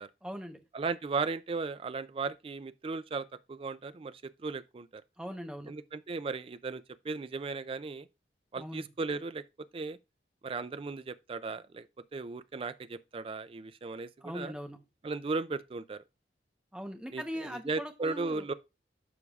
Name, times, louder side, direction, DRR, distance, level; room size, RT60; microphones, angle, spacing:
voice 1, 0.2-0.6 5.2-5.7 8.6-8.9 14.2-14.8 16.7-18.5, equal, 5° right, 0.9 m, -40 dB
voice 2, 0.7-5.0 5.7-8.1 8.5-9.4 9.7-10.0 10.4-11.9 12.1-14.5 15.0-16.0 17.1-18.5, right 4 dB, 30° right, 0.4 m, -36 dB
12.0 x 4.8 x 2.4 m
head